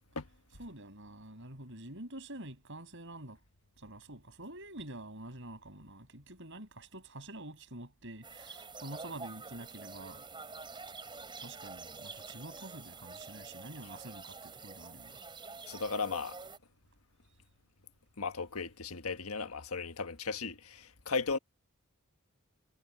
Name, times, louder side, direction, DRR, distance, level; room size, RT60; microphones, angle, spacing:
voice 1, 0.6-3.4 3.8-10.2 11.4-15.2, right 1 dB, 60° right, 6.7 m, -47 dB
sound 1, 8.2-16.6, right 4 dB, 20° right, 5.1 m, -47 dB
voice 2, 15.7-16.4 18.2-21.4, left 4 dB, 85° left, 1.6 m, -36 dB
head